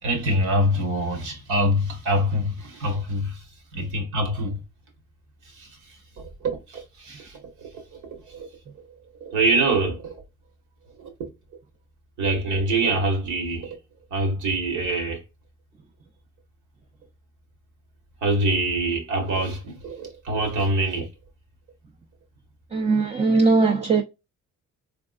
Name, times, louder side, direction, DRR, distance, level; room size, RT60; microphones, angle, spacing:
voice 1, 0.0-3.4 3.7-4.6 5.5-5.7 6.2-7.4 7.7-8.5 9.2-10.2 11.0-11.1 12.2-13.7 14.1-15.2 18.2-21.1, right 1 dB, 85° right, 1.7 m, -25 dB
voice 2, 22.7-24.0, right 3 dB, 20° right, 0.6 m, -19 dB
3.6 x 3.5 x 2.4 m
cardioid pair, 90°, 30 cm